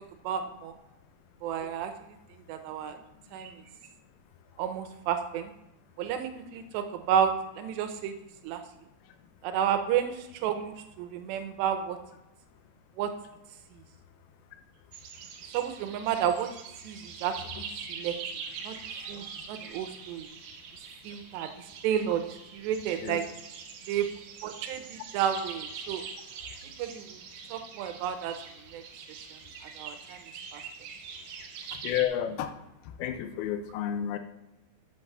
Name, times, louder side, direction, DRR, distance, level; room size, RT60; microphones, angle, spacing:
voice 1, 0.2-0.8 1.4-1.9 2.5-3.0 3.3-3.5 4.6-5.5 6.0-8.1 8.4-8.6 9.4-12.0 13.0-13.1 15.5-16.5 16.8-18.2 18.6-18.8 19.1-20.3 21.0-23.2 23.9-24.1 24.4-26.0 26.8-27.2 27.5-28.4 28.7-28.8 29.3-29.4 29.8-30.2 30.5-30.6, right 9 dB, 85° right, 7 dB, 3.0 m, -31 dB
sound 1, 14.9-32.1, right 6 dB, 70° right, 2.7 m, -43 dB
voice 2, 31.8-32.5 32.8-34.2, left 10 dB, 80° left, 8 dB, 2.3 m, -31 dB
7.7 x 6.1 x 6.5 m, 0.91 s
omnidirectional pair, 4.9 m